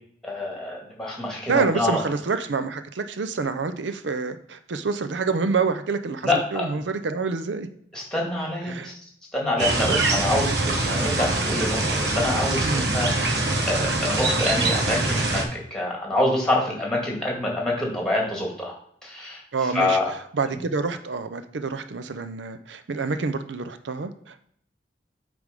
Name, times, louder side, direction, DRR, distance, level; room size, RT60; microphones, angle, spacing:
voice 1, 0.2-2.0 6.2-6.7 7.9-8.9 9.3-18.7 19.0-19.4 19.7-20.1, left 1 dB, 5° left, -2 dB, 2.2 m, -26 dB
voice 2, 1.5-7.7 8.6-8.9 9.9-10.0 12.6-12.9 19.5-20.0 20.3-24.5, right 4 dB, 90° right, 10 dB, 0.6 m, -27 dB
sound 1, 9.6-15.4, right 2 dB, 70° right, 1.2 m, -24 dB
8.1 x 3.4 x 5.2 m, 0.66 s
head